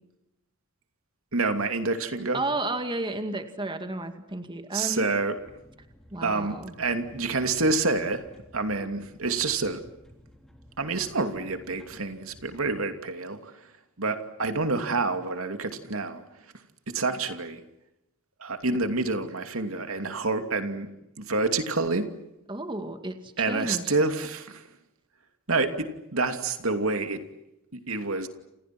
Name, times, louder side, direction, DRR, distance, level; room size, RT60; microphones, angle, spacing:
voice 1, 1.3-2.4 4.7-5.4 6.2-8.2 8.5-9.8 10.8-13.7 14.0-16.2 16.9-17.6 18.4-20.9 21.2-22.1 23.4-24.7 25.5-27.2 27.7-28.3, right 3 dB, 80° right, 7 dB, 2.7 m, -28 dB
voice 2, 2.3-5.1 6.1-6.7 22.5-23.2 23.5-23.9, right 2 dB, 25° right, 7 dB, 2.1 m, -32 dB
sound 1, 5.4-12.8, equal, ahead, 3.5 m, -54 dB
29.5 x 28.5 x 6.1 m, 0.88 s
head